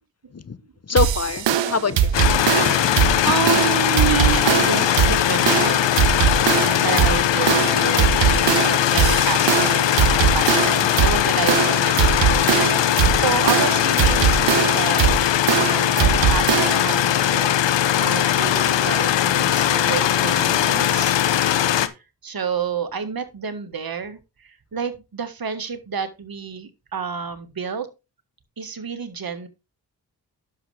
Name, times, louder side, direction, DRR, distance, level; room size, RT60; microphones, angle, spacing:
voice 1, 0.9-2.1 2.4-3.1 6.4-6.8, left 5 dB, 35° left, 0.8 m, -26 dB
sound 1, 1.0-16.9, right 9 dB, 90° right, 0.9 m, -21 dB
sound 2, 2.1-21.9, left 11 dB, 80° left, 0.9 m, -20 dB
voice 2, 2.9-5.8 6.8-15.1 15.5-17.5 18.0-21.2 21.8-21.9 22.2-27.9 28.6-29.5, right 6 dB, 55° right, 1.7 m, -29 dB
10.5 x 6.9 x 3.4 m
cardioid pair, 45°, 43 cm